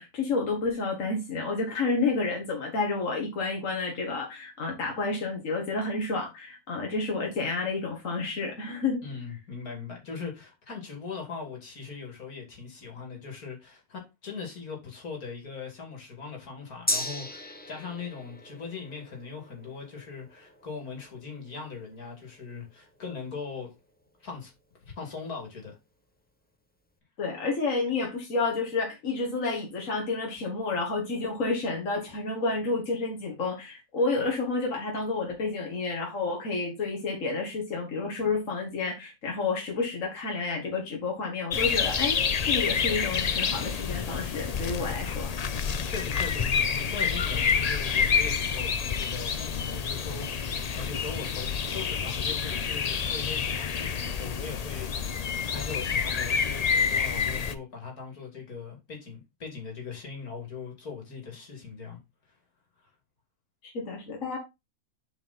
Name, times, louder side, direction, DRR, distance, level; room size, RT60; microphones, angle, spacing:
voice 1, 0.0-9.0 27.2-45.3 63.6-64.4, left 3 dB, 55° left, 2.0 m, -30 dB
voice 2, 9.0-23.7 24.2-24.5 24.8-25.8 45.8-62.0, left 5 dB, 75° left, 2.9 m, -40 dB
Gong, 16.9-24.6 25.0-25.1, left 1 dB, 10° left, 0.8 m, -38 dB
sound 1, 41.5-57.5, left 6 dB, 90° left, 0.3 m, -28 dB
7.2 x 5.0 x 4.1 m
omnidirectional pair, 1.6 m